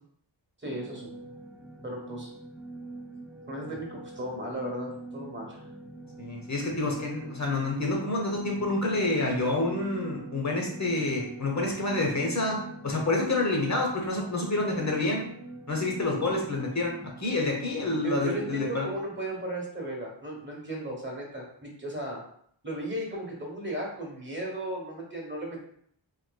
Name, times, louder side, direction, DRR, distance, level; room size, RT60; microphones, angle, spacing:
sound 1, 0.6-18.6, right 2 dB, 5° right, 0.4 m, -44 dB
voice 1, 0.6-1.1 1.8-2.3 3.5-5.7 18.0-22.2 22.6-25.6, right 1 dB, 25° right, -2 dB, 1.0 m, -35 dB
voice 2, 6.2-12.6 12.8-15.2 15.7-18.9, left 2 dB, 35° left, 0 dB, 0.8 m, -28 dB
3.2 x 2.8 x 2.2 m, 0.65 s
wide cardioid pair, 65°, 47 cm